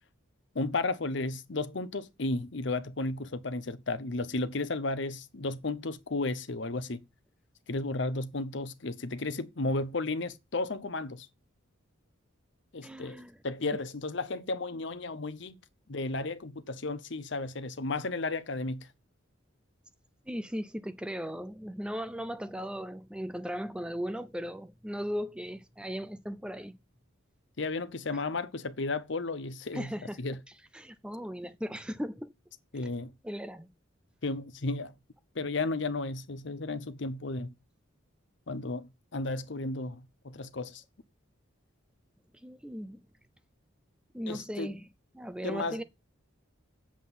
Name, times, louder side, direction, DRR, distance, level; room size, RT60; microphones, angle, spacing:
voice 1, 0.5-7.0 7.7-11.3 12.7-15.5 15.9-18.9 27.6-29.9 30.2-30.4 32.7-33.1 34.2-34.9 35.3-37.5 38.5-40.8 44.3-44.7 45.4-45.8, left 3 dB, 60° left, 0.8 m, -33 dB
voice 2, 12.8-13.4 20.3-26.8 28.1-28.2 29.7-30.2 30.7-32.3 33.2-33.7 42.4-43.0 44.1-44.9 45.1-45.8, equal, 5° right, 0.5 m, -37 dB
8.0 x 7.4 x 5.5 m
head